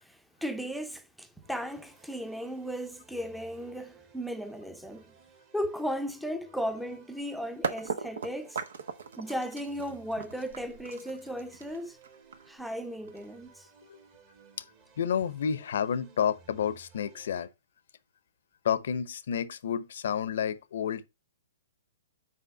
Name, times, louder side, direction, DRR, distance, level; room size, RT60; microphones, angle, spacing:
voice 1, 0.0-5.1 5.5-8.6 9.2-12.0 12.5-13.7, equal, ahead, 0.7 m, -36 dB
sound 1, 1.4-17.5, right 6 dB, 35° right, 1.9 m, -59 dB
sound 2, 7.2-7.3 7.6-13.5, right 5 dB, 75° right, 1.0 m, -38 dB
voice 2, 15.0-17.5 18.6-21.1, left 8 dB, 65° left, 0.7 m, -30 dB
5.7 x 4.9 x 5.3 m
hypercardioid pair, 125°, 0 cm